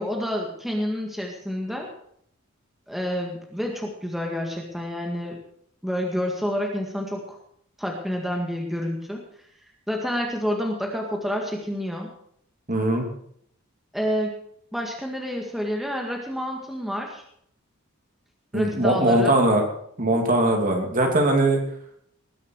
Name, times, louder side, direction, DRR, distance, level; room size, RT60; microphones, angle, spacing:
voice 1, 0.0-1.9 2.9-5.4 5.8-7.4 7.8-9.2 9.9-12.1 13.9-14.4 14.7-17.2 18.5-19.4, equal, ahead, 0 dB, 1.9 m, -28 dB
voice 2, 12.7-13.0 18.5-19.6 20.0-21.6, right 1 dB, 40° right, 2 dB, 3.0 m, -20 dB
19.5 x 10.5 x 4.8 m, 0.67 s
head